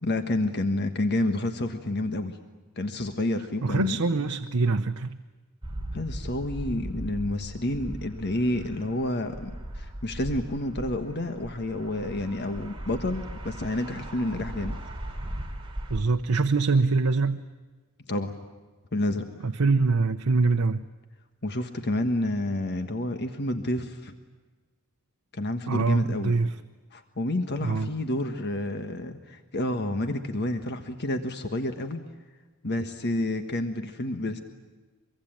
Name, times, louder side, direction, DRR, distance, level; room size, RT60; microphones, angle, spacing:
voice 1, 0.0-2.4 2.8-4.3 5.9-14.8 18.1-18.3 18.9-19.2 21.4-24.1 25.3-26.3 26.9-32.0 32.6-34.4, left 1 dB, 50° left, 7 dB, 1.4 m, -29 dB
voice 2, 3.6-5.2 15.9-17.4 19.4-20.8 25.7-26.5 27.6-27.9, right 3 dB, 80° right, 6 dB, 0.8 m, -24 dB
sound 1, 5.6-16.0, right 1 dB, 25° right, 3.5 m, -38 dB
24.0 x 23.5 x 8.9 m, 1.3 s
head